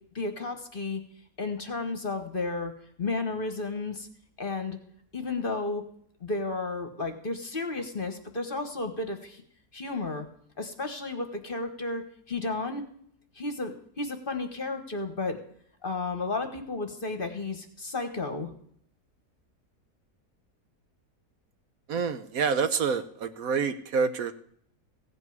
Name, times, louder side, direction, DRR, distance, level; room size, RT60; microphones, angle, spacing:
voice 1, 0.1-1.0 1.4-2.7 3.0-4.1 4.4-4.8 5.1-5.9 6.2-9.4 9.7-10.3 10.6-12.8 13.3-15.4 15.8-18.5, left 3 dB, 35° left, 7 dB, 1.3 m, -32 dB
voice 2, 21.9-24.3, right 5 dB, 65° right, 11 dB, 1.2 m, -27 dB
16.0 x 5.4 x 9.3 m, 0.65 s
omnidirectional pair, 1.7 m